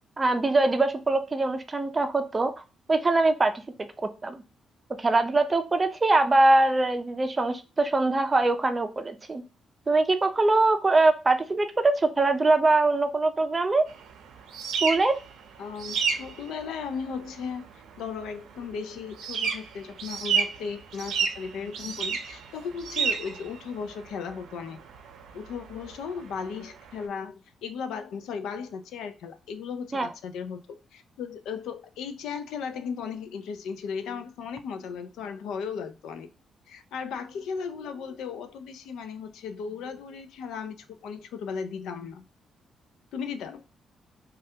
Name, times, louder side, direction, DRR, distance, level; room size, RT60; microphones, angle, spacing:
voice 1, 0.2-2.5 2.9-3.5 4.2-4.4 5.0-9.4 9.9-13.8 14.8-15.1 29.9-30.1, right 2 dB, 25° right, 0.4 m, -22 dB
sound 1, 13.9-27.0, right 6 dB, 85° right, 0.5 m, -33 dB
voice 2, 15.6-17.6 18.0-24.8 25.3-36.3 36.7-42.3 43.1-43.6, left 6 dB, 90° left, 0.4 m, -36 dB
3.2 x 2.3 x 2.7 m
cardioid pair, 110°, 0 cm